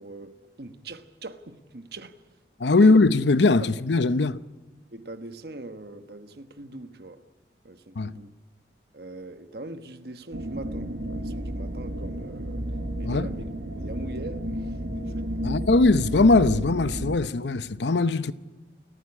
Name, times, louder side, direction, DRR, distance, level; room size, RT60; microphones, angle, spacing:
voice 1, 0.0-2.2 2.8-3.0 3.6-3.7 4.9-7.2 7.6-8.3 8.9-12.7 13.0-13.5 13.7-15.3, right 2 dB, 60° right, 1.3 m, -41 dB
voice 2, 2.6-4.4 8.0-8.2 13.0-13.3 15.4-18.3, left 3 dB, 80° left, 0.7 m, -20 dB
sound 1, 10.3-17.2, right 1 dB, 80° right, 1.7 m, -32 dB
28.5 x 14.5 x 9.8 m
head